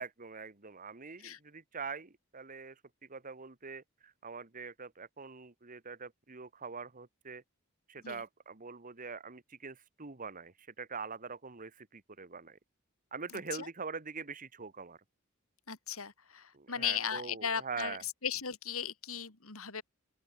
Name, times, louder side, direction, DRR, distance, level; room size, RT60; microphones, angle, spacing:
voice 1, 0.0-7.4 7.9-12.6 13.1-15.0 16.5-18.0, right 5 dB, 40° right, 1.6 m, -44 dB
voice 2, 15.7-19.8, left 8 dB, 75° left, 3.1 m, -37 dB
open air
head